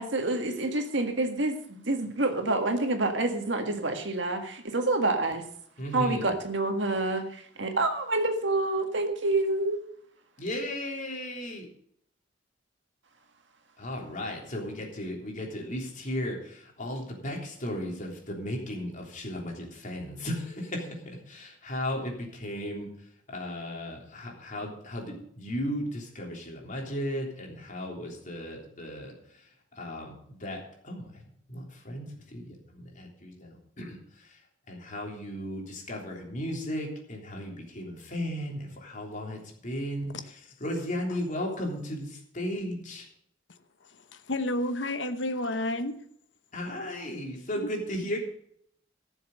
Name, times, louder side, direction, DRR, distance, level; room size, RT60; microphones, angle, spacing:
voice 1, 0.0-5.5 5.9-9.8, right 2 dB, 70° right, 1.8 m, -28 dB
voice 2, 5.8-6.3 10.4-11.7 13.8-22.9 23.3-29.1 29.4-29.5 29.7-31.2 31.5-34.4 34.7-40.1 40.6-43.1 46.5-48.2, equal, 45° left, 3.4 m, -35 dB
voice 3, 44.1-46.0 47.6-47.7, left 1 dB, 70° left, 1.0 m, -30 dB
14.5 x 7.3 x 6.6 m
head